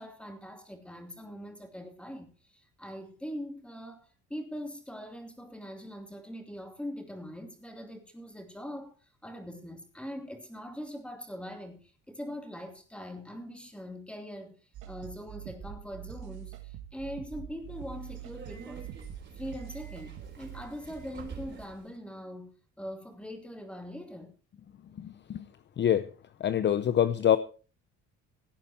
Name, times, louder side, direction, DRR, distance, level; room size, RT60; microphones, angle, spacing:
voice 1, 0.0-8.9 9.2-14.6 14.9-18.9 19.3-24.3, equal, 5° left, 2.8 m, -42 dB
sound 1, 14.7-20.6, right 11 dB, 80° right, 2.1 m, -44 dB
Subway metro underground, 17.6-21.9, right 5 dB, 35° right, 4.3 m, -47 dB
voice 2, 25.0-25.4 25.8-26.1 26.4-27.4, left 10 dB, 35° left, 0.6 m, -25 dB
17.0 x 8.9 x 4.4 m
cardioid pair, 115°, 30 cm